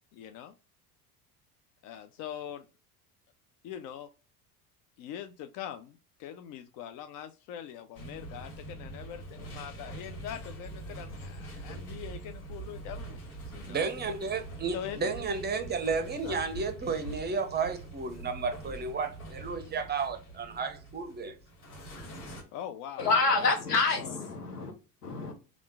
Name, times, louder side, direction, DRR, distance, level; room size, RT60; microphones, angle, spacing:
voice 1, 0.1-0.5 1.8-2.7 3.6-4.1 5.0-13.9 14.7-15.3 16.2-16.4 22.5-23.1 23.4-24.2, left 10 dB, 45° left, 0.4 m, -43 dB
sound 1, 8.0-22.4, right 2 dB, 75° left, 1.4 m, -44 dB
voice 2, 13.7-21.4, right 4 dB, 20° right, 0.6 m, -32 dB
voice 3, 23.0-24.7 25.0-25.3, left 4 dB, 90° left, 0.9 m, -27 dB
3.5 x 2.4 x 3.5 m
hypercardioid pair, 70°, 46 cm